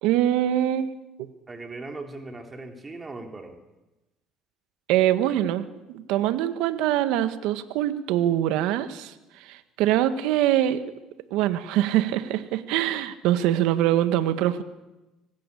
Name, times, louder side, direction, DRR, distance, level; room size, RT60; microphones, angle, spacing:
voice 1, 0.0-0.9 1.2-1.3 4.9-10.8 11.3-14.6, right 12 dB, 75° right, 11 dB, 1.5 m, -24 dB
voice 2, 1.5-3.6, right 3 dB, 25° right, 4 dB, 3.4 m, -38 dB
25.0 x 19.0 x 8.5 m, 1.0 s
supercardioid pair, 80°, 0 cm